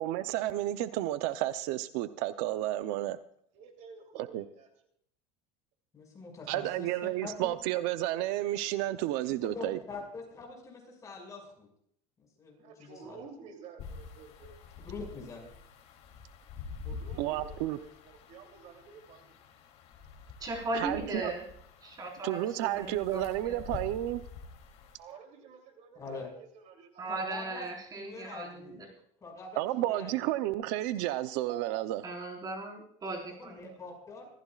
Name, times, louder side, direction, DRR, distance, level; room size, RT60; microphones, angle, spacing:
voice 1, 0.0-3.2 4.1-4.4 6.5-9.8 17.2-17.8 20.7-21.3 22.2-24.2 29.6-32.0, right 14 dB, 85° right, 0.7 m, -31 dB
voice 2, 3.5-4.7 12.6-14.6 16.8-19.3 25.0-27.4 33.5-33.8, right 5 dB, 60° right, 3.1 m, -51 dB
voice 3, 5.9-7.4 9.4-11.7 12.2-13.2 14.8-15.5 25.9-26.3 27.1-27.7 27.9-28.8 29.2-30.1 33.3-34.3, left 3 dB, 25° left, 5.7 m, -44 dB
sound 1, 13.8-25.0, left 5 dB, 50° left, 3.0 m, -47 dB
voice 4, 20.4-21.4 21.8-23.8 27.0-28.9 32.0-33.7, right 2 dB, 30° right, 4.7 m, -38 dB
25.5 x 15.5 x 2.4 m
cardioid pair, 150°, 14 cm